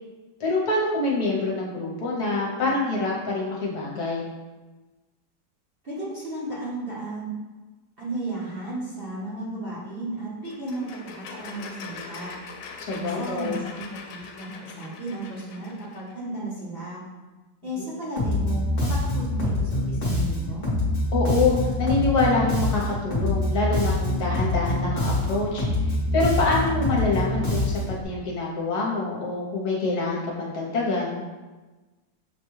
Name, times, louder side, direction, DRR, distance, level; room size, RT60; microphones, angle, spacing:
voice 1, 0.4-4.3 12.8-13.5 17.8-17.9 21.1-31.1, left 3 dB, 65° left, -3 dB, 1.3 m, -26 dB
voice 2, 5.8-7.3 8.0-12.3 12.9-17.0 17.6-20.6, right 1 dB, 40° right, -9 dB, 0.9 m, -34 dB
sound 1, 10.5-16.1, left 5 dB, 85° left, 1.3 m, -42 dB
Bass guitar, 18.2-28.0, left 1 dB, 35° left, 0.9 m, -25 dB
6.4 x 2.2 x 3.0 m, 1.2 s
omnidirectional pair, 1.9 m